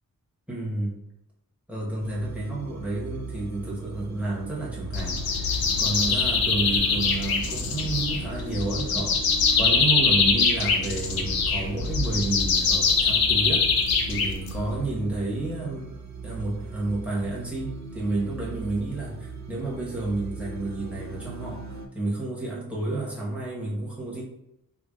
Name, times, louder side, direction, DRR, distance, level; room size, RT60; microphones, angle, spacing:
voice 1, 0.5-1.0 1.7-9.2 9.5-15.9 16.2-24.2, right 2 dB, 5° right, -6 dB, 1.0 m, -31 dB
sound 1, 2.0-21.9, right 4 dB, 50° right, 0.5 m, -39 dB
Single bird, 4.9-14.8, left 4 dB, 90° left, 0.6 m, -23 dB
4.8 x 2.3 x 2.3 m, 0.85 s
wide cardioid pair, 135°, 35 cm